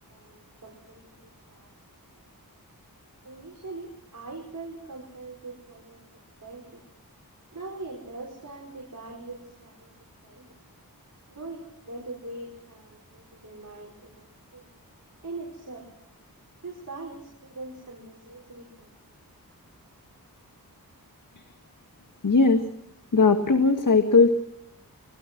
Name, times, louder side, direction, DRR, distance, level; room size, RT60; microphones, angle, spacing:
voice 1, 0.1-1.7 2.1-2.2 3.2-6.0 6.4-6.8 7.5-10.6 11.3-14.7 15.2-15.9 16.6-18.9, right 3 dB, 55° right, -2 dB, 5.2 m, -42 dB
voice 2, 22.2-22.6 23.1-24.3, left 4 dB, 60° left, 7 dB, 1.8 m, -18 dB
25.0 x 21.5 x 6.1 m, 0.74 s
wide cardioid pair, 85°, 36 cm